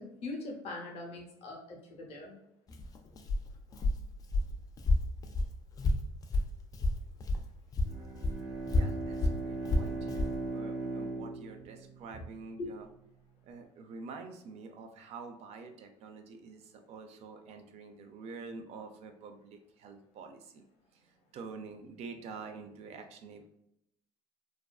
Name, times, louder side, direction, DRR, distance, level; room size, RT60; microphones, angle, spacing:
voice 1, 0.0-2.4 12.6-12.7, left 2 dB, 55° left, 0 dB, 0.8 m, -41 dB
Walk footsteps, 2.7-7.5 7.7-10.4, left 2 dB, 30° left, 0.3 m, -31 dB
Bowed string instrument, 7.8-12.6, right 2 dB, 80° right, 0.9 m, -39 dB
voice 2, 8.7-12.9 13.4-20.6 20.9-23.5, right 4 dB, 55° right, 6 dB, 0.4 m, -47 dB
2.5 x 2.2 x 2.2 m, 0.79 s
supercardioid pair, 90°, 13 cm